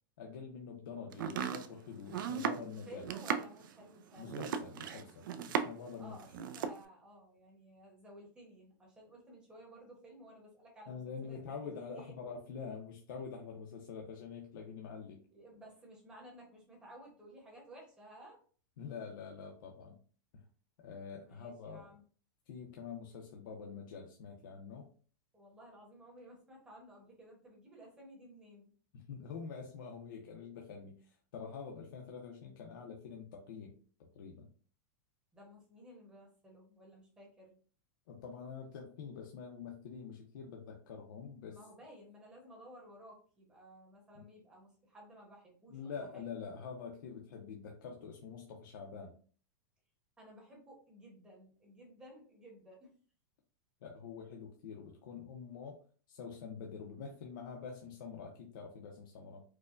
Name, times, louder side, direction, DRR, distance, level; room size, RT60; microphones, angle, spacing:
voice 1, 0.2-3.0 4.2-6.2 10.9-15.2 18.8-20.0 20.3-20.4 20.8-21.8 22.5-24.9 28.9-33.7 34.0-34.5 38.1-41.6 44.1-44.2 45.7-49.1 53.8-55.8 56.1-59.4, left 6 dB, 70° left, 0 dB, 0.7 m, -46 dB
Domestic sounds home sounds, 1.1-5.9 6.2-6.8, right 7 dB, 65° right, 0.4 m, -37 dB
voice 2, 2.9-4.4 6.0-12.1 15.3-18.4 21.2-22.0 25.3-28.7 35.3-37.5 41.5-46.3 50.2-52.9, right 1 dB, 10° right, -3 dB, 0.9 m, -55 dB
4.6 x 2.2 x 2.5 m, 0.42 s
supercardioid pair, 170°, 11 cm